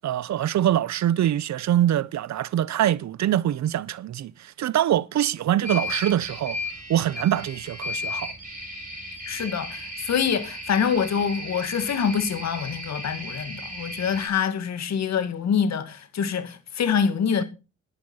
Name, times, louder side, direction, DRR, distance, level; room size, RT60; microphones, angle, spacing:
voice 1, 0.0-4.3 4.6-6.6 6.9-8.3, right 11 dB, 70° right, 0.7 m, -24 dB
sound 1, 5.6-14.3, left 2 dB, 25° right, 7.0 m, -35 dB
voice 2, 9.3-17.4, left 7 dB, 65° left, 2.1 m, -25 dB
11.0 x 10.5 x 5.6 m
cardioid pair, 85°, 29 cm